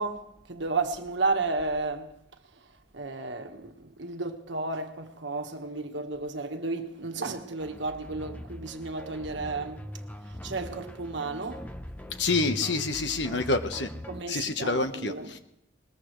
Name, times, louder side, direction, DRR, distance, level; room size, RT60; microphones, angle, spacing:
voice 1, 0.0-2.1 2.9-9.9 10.3-11.7 14.1-15.4, right 3 dB, 75° right, 1.5 m, -33 dB
sound 1, 7.6-14.2, equal, 10° left, 0.7 m, -42 dB
voice 2, 12.2-13.9 14.3-15.4, left 3 dB, 70° left, 1.2 m, -27 dB
21.5 x 20.5 x 3.2 m
head